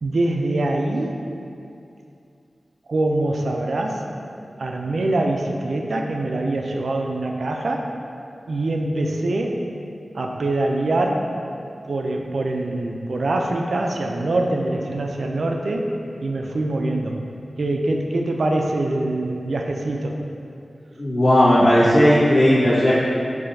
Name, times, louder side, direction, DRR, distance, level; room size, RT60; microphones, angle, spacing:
voice 1, 0.0-1.2 2.9-4.0 4.6-7.9 8.5-9.6 10.1-11.3 11.9-15.9 16.2-17.2 17.6-20.2, right 2 dB, 75° right, 2 dB, 0.3 m, -24 dB
voice 2, 21.0-22.9, equal, 60° left, -10 dB, 1.3 m, -15 dB
5.6 x 2.6 x 2.6 m, 2.6 s
wide cardioid pair, 90°, 0 cm